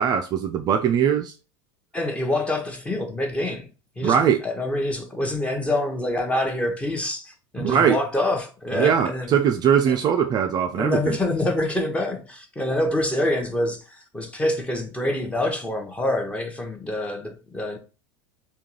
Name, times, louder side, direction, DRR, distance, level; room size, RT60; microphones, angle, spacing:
voice 1, 0.0-1.3 4.0-4.4 7.6-8.0 8.8-11.2, right 8 dB, 30° right, 0.4 m, -21 dB
voice 2, 1.9-3.7 4.0-9.3 9.9-10.0 10.8-17.8, left 1 dB, 10° left, 0.9 m, -26 dB
3.5 x 2.3 x 2.9 m
figure-of-eight pair, 75°, 13 cm